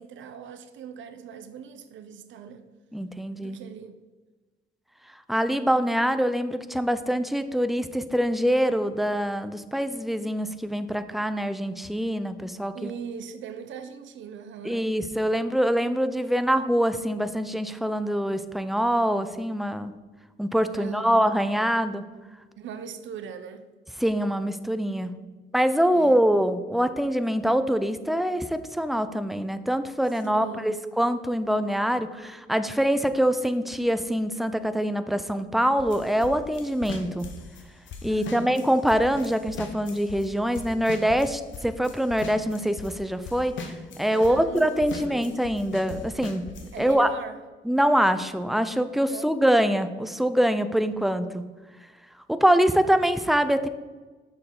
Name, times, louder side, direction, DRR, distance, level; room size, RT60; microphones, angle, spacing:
voice 1, 0.0-2.7 3.4-4.0 12.7-14.8 20.7-21.2 22.6-23.6 25.9-26.2 30.2-30.7 38.1-38.6 44.0-44.8 45.1-45.4 46.7-47.4 49.1-49.3, right 7 dB, 70° right, 9 dB, 0.6 m, -40 dB
voice 2, 2.9-3.6 5.3-12.9 14.6-19.9 20.4-22.0 24.0-25.1 25.5-37.3 38.0-46.5 46.8-47.1 47.7-51.4 52.3-53.7, equal, ahead, 11 dB, 0.5 m, -24 dB
sound 1, 35.8-40.3 40.5-42.9 43.2-46.9, left 4 dB, 70° left, 1.0 m, -40 dB
6.8 x 6.1 x 3.8 m, 1.3 s
cardioid pair, 90°, 20 cm